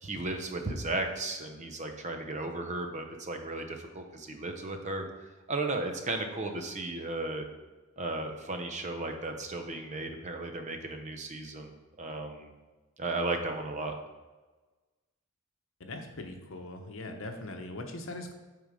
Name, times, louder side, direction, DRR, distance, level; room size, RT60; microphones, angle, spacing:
voice 1, 0.0-5.1 5.5-7.5 8.0-12.5 13.0-13.9, right 2 dB, 35° right, 5 dB, 0.7 m, -35 dB
voice 2, 15.8-18.3, left 2 dB, 60° left, 5 dB, 0.9 m, -40 dB
8.5 x 3.8 x 5.0 m, 1.2 s
head